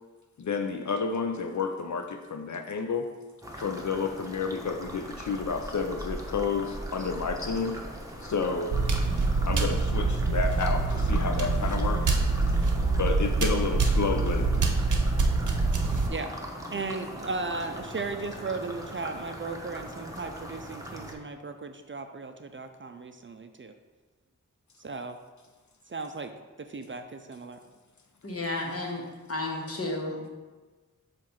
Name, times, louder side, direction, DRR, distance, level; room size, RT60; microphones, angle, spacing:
voice 1, 0.4-3.1 3.6-7.8 8.2-8.8 9.4-12.2 13.0-14.7, left 5 dB, 65° left, 5 dB, 0.5 m, -30 dB
sound 1, 3.4-21.1, equal, 10° right, 0.9 m, -41 dB
sound 2, 8.7-16.1, right 3 dB, 70° right, 0.7 m, -25 dB
voice 2, 16.7-23.7 24.8-25.2 25.9-26.3 26.6-27.6, right 3 dB, 40° right, 7 dB, 0.4 m, -36 dB
voice 3, 28.2-30.3, left 2 dB, 45° left, 0 dB, 1.2 m, -33 dB
7.4 x 2.5 x 5.5 m, 1.3 s
wide cardioid pair, 65°, 31 cm